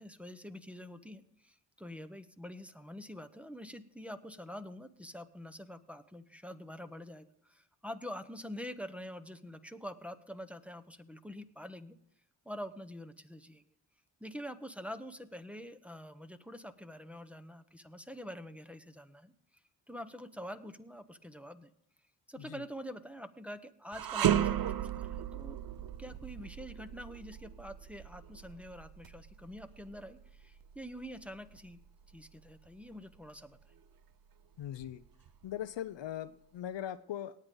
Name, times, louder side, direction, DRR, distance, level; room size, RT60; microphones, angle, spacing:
voice 1, 0.0-12.0 12.4-13.6 14.2-19.3 19.9-21.7 22.3-25.6 26.0-31.8 32.1-33.6, equal, 5° right, 7 dB, 1.1 m, -46 dB
sound 1, 23.9-33.2 33.6-33.8 34.6-35.5, right 10 dB, 45° right, 0.7 m, -36 dB
voice 2, 34.6-35.0 35.4-37.4, left 11 dB, 60° left, 13 dB, 0.7 m, -40 dB
18.5 x 8.7 x 3.9 m, 0.74 s
supercardioid pair, 50°, 50 cm